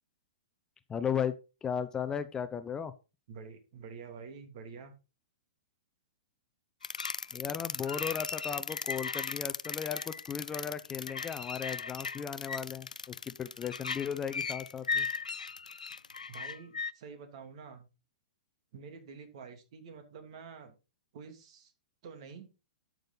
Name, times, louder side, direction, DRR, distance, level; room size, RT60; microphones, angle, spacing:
voice 1, 0.9-1.3 1.6-2.9 7.3-15.1, left 7 dB, 15° left, 11 dB, 0.8 m, -36 dB
voice 2, 3.3-4.9 16.3-17.9 18.7-20.7 21.1-21.7 22.0-22.5, right 5 dB, 55° right, 7 dB, 2.8 m, -48 dB
sound 1, 6.8-16.9, left 5 dB, 85° left, 0.4 m, -37 dB
12.0 x 6.5 x 4.0 m, 0.30 s
hypercardioid pair, 115°, 4 cm